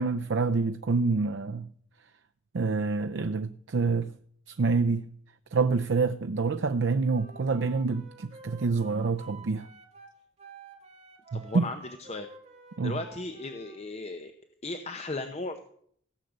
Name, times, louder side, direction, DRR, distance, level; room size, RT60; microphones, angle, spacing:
voice 1, 0.0-1.7 2.5-4.1 4.5-5.1 5.5-9.7 11.3-11.7 12.8-13.0, right 4 dB, 65° right, 0.5 m, -27 dB
Wind instrument woodwind instrument, 7.0-13.8, right 3 dB, 30° right, 2.2 m, -50 dB
voice 2, 11.3-11.8 12.1-12.3 12.8-14.3 14.6-15.6, left 2 dB, 35° left, 0.8 m, -36 dB
16.0 x 6.6 x 8.0 m
head